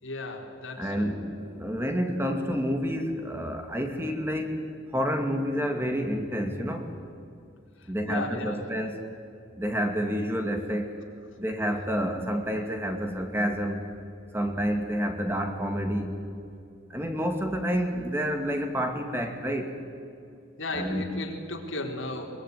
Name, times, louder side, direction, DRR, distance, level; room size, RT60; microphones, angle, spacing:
voice 1, 0.0-1.2 7.8-8.6 20.6-22.3, left 2 dB, 80° left, 1 dB, 4.0 m, -35 dB
voice 2, 0.8-4.6 4.9-6.9 7.9-9.0 9.6-11.0 11.4-13.8 14.3-16.2 16.9-19.8 20.7-21.0, equal, 10° right, 4 dB, 2.1 m, -29 dB
23.0 x 22.0 x 9.5 m, 2.5 s
head